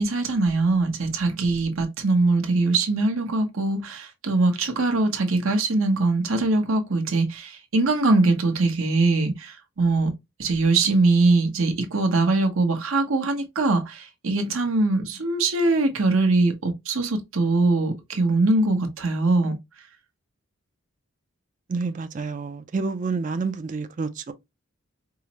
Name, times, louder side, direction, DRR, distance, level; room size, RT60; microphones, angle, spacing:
voice 1, 0.0-10.1 10.4-19.6, right 3 dB, 75° right, 0.9 m, -22 dB
voice 2, 21.7-24.3, right 4 dB, 35° right, 0.4 m, -29 dB
4.7 x 2.0 x 2.8 m
head